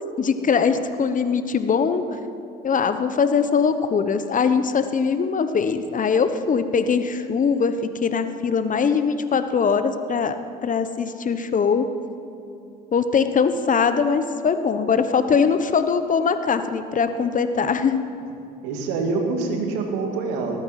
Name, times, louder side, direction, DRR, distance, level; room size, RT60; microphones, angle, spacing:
voice 1, 0.2-2.1 2.6-7.7 8.0-10.4 10.6-11.9 12.9-18.0, left 6 dB, 40° left, 10 dB, 1.0 m, -21 dB
voice 2, 18.6-20.6, right 3 dB, 80° right, 3 dB, 2.0 m, -25 dB
19.0 x 9.0 x 5.8 m, 2.6 s
hypercardioid pair, 65°, 21 cm